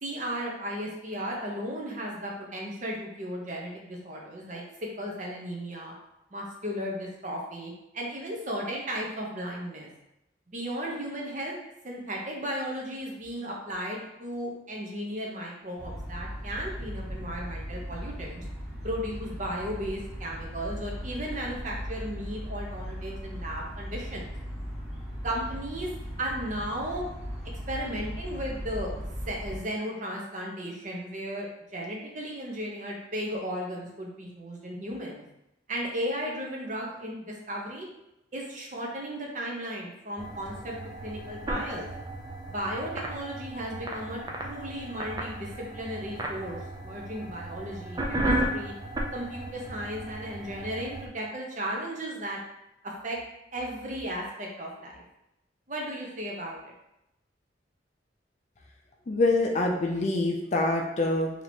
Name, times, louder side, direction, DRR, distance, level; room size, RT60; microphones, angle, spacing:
voice 1, 0.0-4.6 5.0-5.9 6.3-9.9 10.5-11.5 11.8-18.4 18.8-24.3 25.2-25.9 26.2-27.0 27.7-28.9 29.3-31.5 31.7-35.2 35.7-37.9 38.3-40.8 41.0-41.9 42.5-48.7 49.1-52.4 52.8-53.2 53.5-55.0 55.7-56.7, equal, 40° right, -1 dB, 0.8 m, -35 dB
sound 1, 15.8-29.6, equal, ahead, 1.0 m, -38 dB
sound 2, 40.2-51.1, right 1 dB, 20° right, 0.4 m, -34 dB
voice 2, 59.1-61.3, left 2 dB, 40° left, 1 dB, 0.4 m, -25 dB
2.9 x 2.9 x 4.2 m, 0.87 s
head